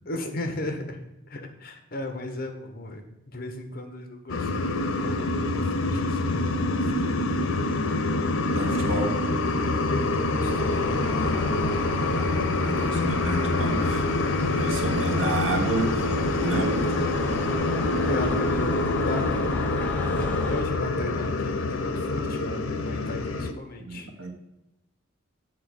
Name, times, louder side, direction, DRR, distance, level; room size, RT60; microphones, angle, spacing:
voice 1, 0.1-1.0 1.3-7.4 10.1-11.8 18.1-24.1, left 2 dB, 45° left, 6 dB, 1.0 m, -36 dB
sound 1, 4.3-23.5, left 2 dB, 85° left, 0.6 m, -26 dB
voice 2, 8.5-9.2 12.6-14.1 14.5-16.1 16.4-17.1 23.8-24.3, right 2 dB, 80° right, 2 dB, 1.4 m, -30 dB
sound 2, 10.5-20.6, left 1 dB, 10° left, 0.7 m, -35 dB
7.7 x 3.8 x 6.4 m, 0.91 s
head